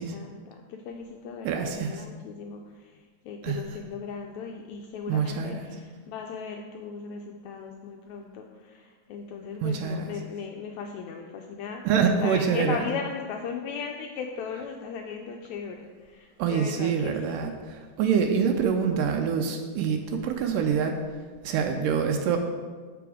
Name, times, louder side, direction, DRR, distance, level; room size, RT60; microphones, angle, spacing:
voice 1, 0.0-11.8 12.2-17.5 20.5-20.8, left 6 dB, 85° left, 3 dB, 1.6 m, -37 dB
voice 2, 1.4-2.0 3.4-3.6 5.1-5.6 9.6-10.0 11.9-12.8 16.4-20.9 21.4-22.4, right 6 dB, 85° right, 4 dB, 2.2 m, -25 dB
6.9 x 6.8 x 4.8 m, 1.5 s
omnidirectional pair, 3.8 m